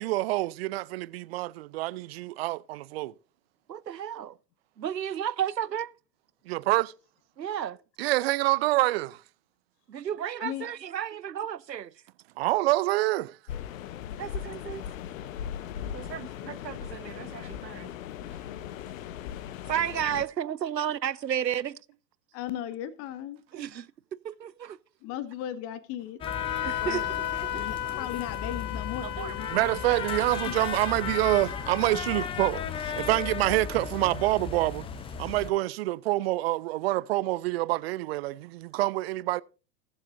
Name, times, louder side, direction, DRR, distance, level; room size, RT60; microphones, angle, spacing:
voice 1, 0.0-3.1 6.5-6.9 8.0-9.2 12.4-13.4 14.2-14.3 23.5-23.7 29.5-34.8 35.2-39.4, right 18 dB, 40° right, 0.6 m, -27 dB
voice 2, 3.7-4.3 4.8-5.9 7.4-7.8 9.9-11.9 14.2-14.8 15.9-17.9 19.7-21.8 23.5-23.8 24.4-24.8 26.6-27.0 27.4-27.6 29.0-29.4 33.0-33.1, right 9 dB, 85° right, 0.8 m, -33 dB
sound 1, 13.5-20.3, left 9 dB, 55° left, 1.0 m, -38 dB
voice 3, 22.3-23.4 25.0-26.2 26.8-27.1 27.5-29.8 30.4-30.5, left 11 dB, 30° left, 0.9 m, -36 dB
sound 2, 26.2-35.5, left 7 dB, 10° left, 0.5 m, -36 dB
Wind instrument woodwind instrument, 26.3-32.0, left 11 dB, 75° left, 0.7 m, -35 dB
21.5 x 7.4 x 2.6 m
figure-of-eight pair, 100°, 49 cm